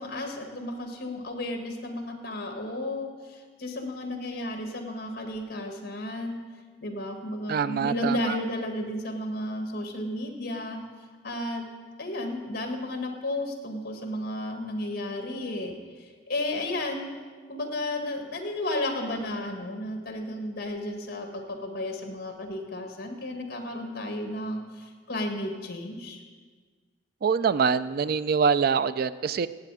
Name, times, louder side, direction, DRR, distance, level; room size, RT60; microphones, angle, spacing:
voice 1, 0.0-6.4 6.8-10.8 11.2-11.6 12.0-17.1 17.5-26.2, left 1 dB, 55° left, 4 dB, 1.7 m, -33 dB
voice 2, 7.5-8.4 27.2-29.5, right 6 dB, 55° right, 15 dB, 0.3 m, -24 dB
16.0 x 8.6 x 4.9 m, 1.5 s
head